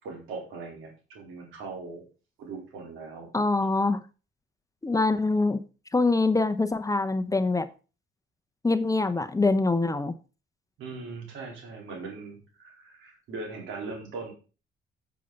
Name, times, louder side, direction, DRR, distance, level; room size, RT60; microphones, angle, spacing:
voice 1, 0.0-2.0 2.4-3.3 10.8-14.3, right 4 dB, 90° right, 4.0 m, -40 dB
voice 2, 3.3-4.0 4.8-5.6 5.9-7.7 8.6-10.1, left 3 dB, 15° left, 0.8 m, -24 dB
8.4 x 7.1 x 5.3 m
cardioid pair, 90°, 20 cm